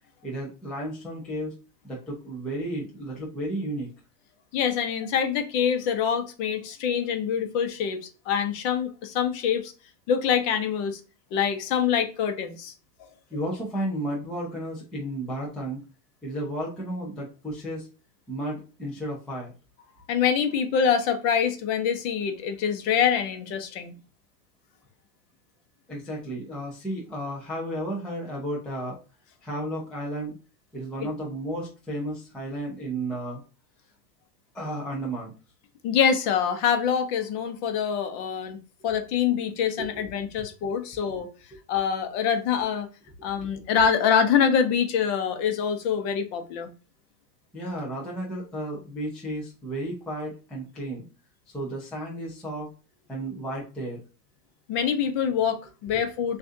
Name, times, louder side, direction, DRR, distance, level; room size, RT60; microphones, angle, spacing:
voice 1, 0.2-1.6 1.8-3.9 13.3-15.8 16.2-17.9 18.3-19.5 25.9-29.0 29.4-30.4 30.7-33.4 34.5-35.3 39.8-39.9 41.5-41.6 43.2-43.3 47.5-51.0 51.5-52.7 53.1-54.0, right 1 dB, ahead, 0.4 m, -33 dB
voice 2, 4.5-9.7 10.1-11.0 11.3-12.7 13.0-13.1 20.1-23.9 35.8-38.6 38.8-41.3 41.7-42.9 43.2-46.7 54.7-56.4, left 7 dB, 45° left, 0.8 m, -25 dB
6.1 x 2.5 x 2.7 m
supercardioid pair, 150°, 48 cm